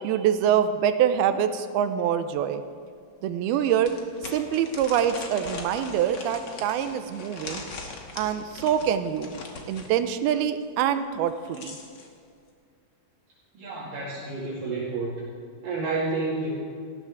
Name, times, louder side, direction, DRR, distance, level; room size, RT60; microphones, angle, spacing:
voice 1, 0.0-2.6 3.2-3.9 4.3-7.6 8.2-9.3 9.7-11.8, right 9 dB, 90° right, 10 dB, 2.6 m, -25 dB
sound 1, 2.3-2.4 2.9-3.0 3.8-9.9 11.2-12.1, left 3 dB, 70° left, 1.0 m, -40 dB
voice 2, 13.5-15.2 15.6-16.5, right 3 dB, 65° right, -8 dB, 3.9 m, -30 dB
18.5 x 14.5 x 3.6 m, 2.2 s
omnidirectional pair, 4.4 m